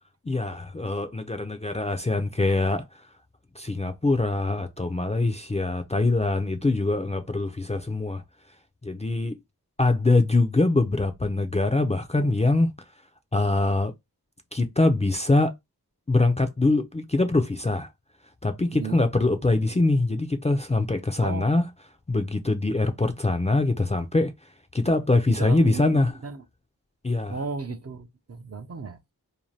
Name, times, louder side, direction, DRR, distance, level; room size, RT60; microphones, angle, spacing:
voice 1, 0.2-2.8 3.6-8.2 8.8-9.4 9.8-12.7 13.3-13.9 14.5-15.5 16.1-17.9 18.4-21.6 22.1-24.3 24.7-26.1 27.0-27.4, left 2 dB, 20° left, 0.4 m, -23 dB
voice 2, 25.3-26.4 27.3-29.0, right 4 dB, 40° right, 0.5 m, -35 dB
2.7 x 2.2 x 3.1 m
wide cardioid pair, 50°, 38 cm